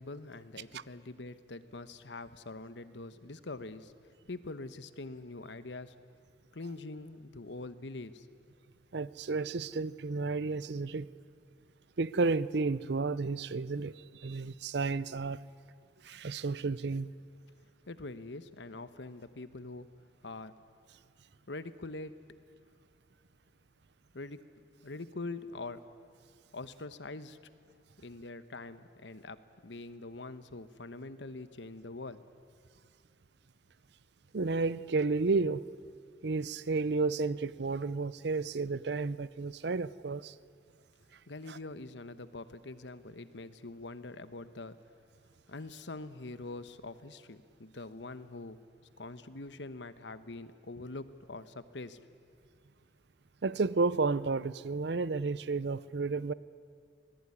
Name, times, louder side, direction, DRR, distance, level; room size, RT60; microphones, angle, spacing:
voice 1, 0.0-3.9 4.3-5.9 6.5-8.4 17.9-19.9 20.2-20.5 21.5-22.3 24.1-24.4 24.8-25.8 26.5-27.5 28.0-29.4 29.6-32.2 41.3-44.8 45.5-48.6 49.0-52.0, left 2 dB, 75° left, 13 dB, 1.1 m, -44 dB
voice 2, 8.9-11.1 12.0-15.4 16.0-17.1 34.3-35.6 36.2-40.3 41.5-41.6 53.4-56.3, right 3 dB, 65° right, 19 dB, 0.6 m, -32 dB
25.5 x 19.0 x 9.9 m, 2.3 s
head